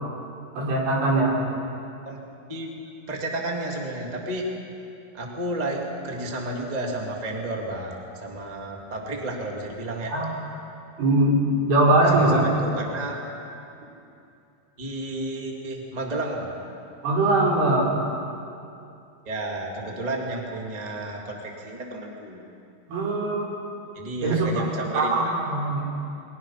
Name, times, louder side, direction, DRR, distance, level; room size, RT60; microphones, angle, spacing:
voice 1, 0.6-1.4 10.1-10.3 11.0-12.4 17.0-18.0 22.9-23.5 24.2-24.7 24.9-25.8, right 2 dB, 85° right, -4 dB, 6.6 m, -21 dB
voice 2, 3.1-4.5 5.1-10.1 12.0-13.2 14.8-16.5 19.2-22.4 23.9-25.4, right 2 dB, 15° right, -1 dB, 2.1 m, -32 dB
29.5 x 22.0 x 5.8 m, 2.6 s
omnidirectional pair, 4.4 m